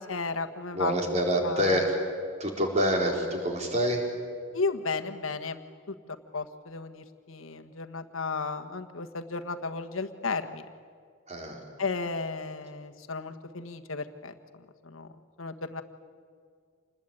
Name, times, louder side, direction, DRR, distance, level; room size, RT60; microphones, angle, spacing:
voice 1, 0.0-0.9 1.4-1.7 4.5-5.6 6.3-10.6 11.8-14.3 14.8-15.1 15.4-15.8, left 4 dB, 90° left, 6 dB, 1.5 m, -34 dB
voice 2, 0.7-2.0 2.4-4.1 11.3-11.6, equal, 35° right, 1 dB, 4.3 m, -26 dB
27.5 x 20.5 x 8.9 m, 2.1 s
head